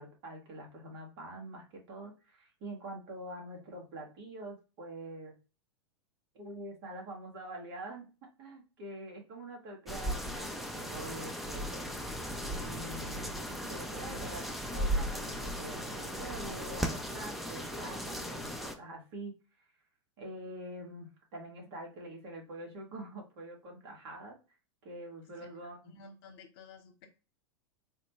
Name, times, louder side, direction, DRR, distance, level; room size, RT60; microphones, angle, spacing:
voice 1, 0.0-5.3 6.3-8.1 8.4-11.9 12.4-13.3 13.6-19.7 20.2-24.4 24.8-25.9, right 1 dB, 60° right, 0 dB, 1.6 m, -45 dB
sound 1, 9.9-18.7, equal, ahead, 0.5 m, -37 dB
voice 2, 25.9-27.1, left 4 dB, 60° left, 5 dB, 0.9 m, -53 dB
3.9 x 2.2 x 3.0 m, 0.32 s
hypercardioid pair, 100°, 14 cm